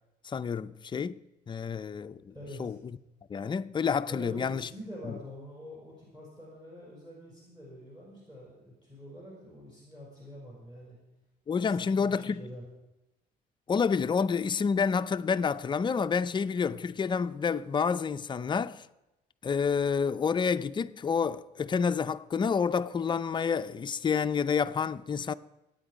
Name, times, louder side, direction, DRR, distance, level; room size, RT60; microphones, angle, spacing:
voice 1, 0.2-1.2 1.5-2.3 2.6-2.8 3.3-4.7 5.1-5.2 11.5-12.4 13.7-18.9 19.4-25.3, left 6 dB, 25° left, 0.5 m, -29 dB
voice 2, 2.3-2.7 4.1-11.0 11.5-12.7, equal, 20° right, 5.9 m, -46 dB
23.5 x 9.0 x 5.1 m
cardioid pair, 110°, 17 cm